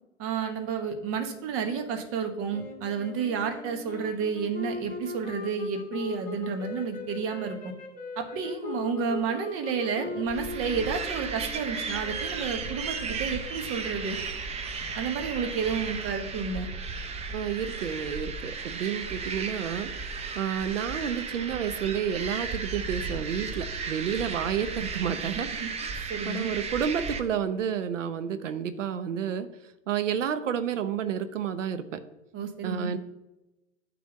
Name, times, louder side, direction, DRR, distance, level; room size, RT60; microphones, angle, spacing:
voice 1, 0.2-7.7 8.2-14.2 14.9-16.7 25.6-25.7 26.1-26.5 32.3-32.9, right 6 dB, 35° right, 5 dB, 1.3 m, -31 dB
sound 1, 2.5-13.2, left 4 dB, 20° left, 1.9 m, -40 dB
sound 2, 10.2-27.2, right 4 dB, 15° right, 0.7 m, -35 dB
voice 2, 17.3-19.9 20.3-25.5 25.8-29.5 29.9-32.0 32.6-33.0, right 8 dB, 80° right, 11 dB, 0.8 m, -30 dB
9.5 x 3.4 x 6.4 m, 0.97 s
hypercardioid pair, 105°, 37 cm